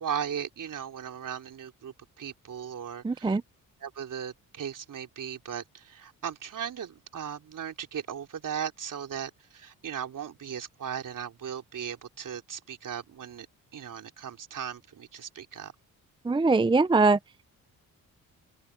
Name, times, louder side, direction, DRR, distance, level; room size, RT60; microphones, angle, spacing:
voice 1, 0.0-3.4 3.8-13.5 13.7-15.7, right 8 dB, 65° right, 3.5 m, -37 dB
voice 2, 3.0-3.4 16.3-17.2, right 3 dB, 15° right, 0.6 m, -22 dB
open air
cardioid pair, 80°, 34 cm